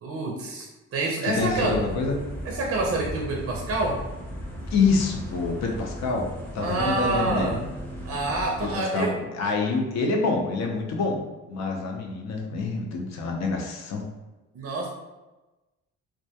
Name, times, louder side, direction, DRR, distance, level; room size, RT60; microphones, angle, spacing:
voice 1, 0.0-1.8 2.4-4.0 6.6-7.6 8.0-9.1 9.4-9.5 14.5-14.9, right 2 dB, 50° right, -1 dB, 0.5 m, -27 dB
voice 2, 1.2-2.2 4.7-7.5 8.6-11.2 11.5-14.0, left 4 dB, 60° left, 1 dB, 0.6 m, -26 dB
sound 1, 1.4-8.7, equal, 5° left, 0.7 m, -36 dB
2.2 x 2.2 x 2.7 m, 1.1 s
cardioid pair, 90°, 30 cm